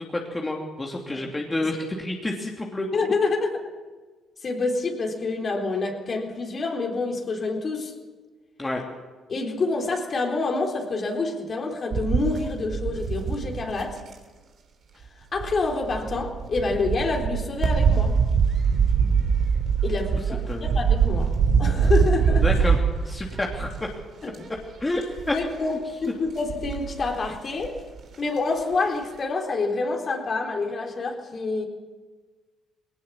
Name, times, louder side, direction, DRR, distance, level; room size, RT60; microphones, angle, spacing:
voice 1, 0.0-3.1 8.6-8.8 20.5-20.7 22.4-22.8 23.0-23.7 24.8-25.0 25.3-25.4 25.6-25.8, left 2 dB, 20° left, 0 dB, 2.8 m, -29 dB
voice 2, 2.9-3.6 4.4-7.9 9.3-14.0 15.0-15.1 15.3-18.2 19.8-22.4 24.2-24.5 25.3-27.8 28.2-31.6, left 3 dB, 45° left, 1 dB, 4.0 m, -27 dB
sound 1, 11.9-14.1 15.4-24.0 24.3-24.6 24.9-25.4 26.3-27.1 27.6-27.7 28.0-28.1, right 6 dB, 55° right, 3.5 m, -23 dB
19.5 x 18.5 x 7.3 m, 1.4 s
supercardioid pair, 65°, 0 cm